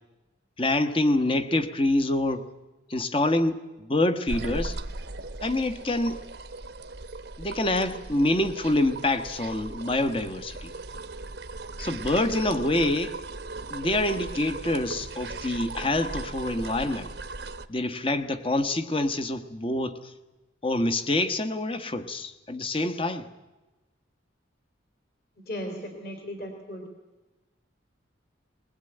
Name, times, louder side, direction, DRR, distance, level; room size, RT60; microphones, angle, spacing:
voice 1, 0.6-2.5 2.9-4.8 5.4-6.2 7.4-10.7 11.8-13.1 13.7-17.1 17.7-20.0 20.6-23.3, left 1 dB, 25° left, 11 dB, 1.1 m, -26 dB
sound 1, 4.3-17.7, right 3 dB, 60° right, 0.9 m, -38 dB
voice 2, 25.5-26.9, equal, 50° left, 4 dB, 3.3 m, -36 dB
20.5 x 20.5 x 9.0 m, 1.1 s
head